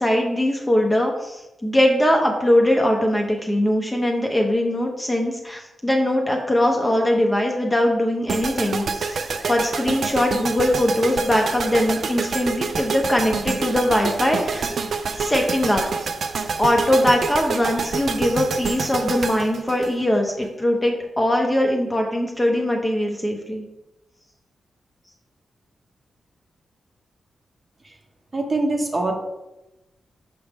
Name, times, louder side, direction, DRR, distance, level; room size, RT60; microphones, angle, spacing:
voice 1, 0.0-14.7 15.1-15.8 16.6-23.7, left 1 dB, 10° left, 1 dB, 0.6 m, -21 dB
sound 1, 8.3-20.5, right 5 dB, 55° right, 0.4 m, -27 dB
voice 2, 28.3-29.1, right 2 dB, 25° right, 3 dB, 0.8 m, -23 dB
6.0 x 5.3 x 3.4 m, 0.98 s
wide cardioid pair, 170°, 0 cm